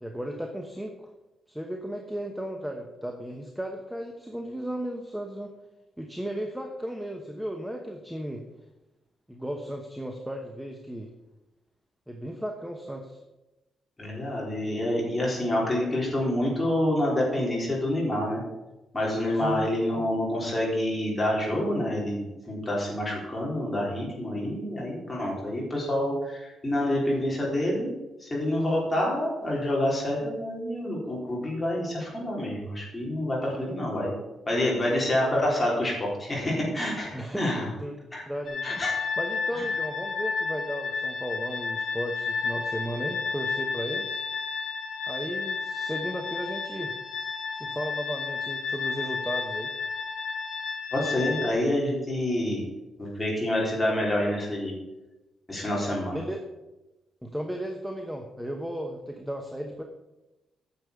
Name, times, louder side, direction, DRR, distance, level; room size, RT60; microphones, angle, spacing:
voice 1, 0.0-1.1 1.5-5.5 6.0-8.4 9.3-11.1 12.1-13.2 19.3-19.7 33.5-33.8 37.1-38.0 38.3-38.7 39.2-44.2 45.1-46.9 47.5-49.7 56.1-56.4 57.2-59.8, equal, 5° right, 2 dB, 1.0 m, -35 dB
voice 2, 14.0-18.4 18.9-27.9 28.2-34.1 34.5-37.7 38.1-38.2 38.6-38.9 39.5-39.6 50.9-52.6 53.0-54.7 55.5-56.2, left 1 dB, 15° left, -4 dB, 3.8 m, -27 dB
sound 1, 38.5-51.5, left 5 dB, 50° left, 2.7 m, -32 dB
9.5 x 6.8 x 6.8 m, 1.0 s
cardioid pair, 150°, 0 cm